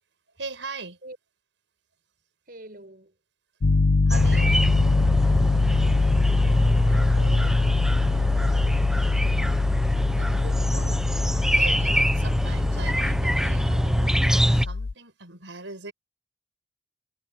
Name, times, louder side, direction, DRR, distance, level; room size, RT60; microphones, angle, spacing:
voice 1, 0.4-1.0 4.1-4.6 8.5-9.0 10.2-11.1 11.5-15.9, right 3 dB, 85° right, 5.8 m, -40 dB
voice 2, 2.5-3.1 6.4-7.7 8.1-8.9, right 1 dB, 50° right, 5.8 m, -45 dB
Piano, 3.6-14.9, left 3 dB, 60° left, 0.6 m, -23 dB
sound 1, 4.1-14.6, equal, 5° right, 1.1 m, -25 dB
head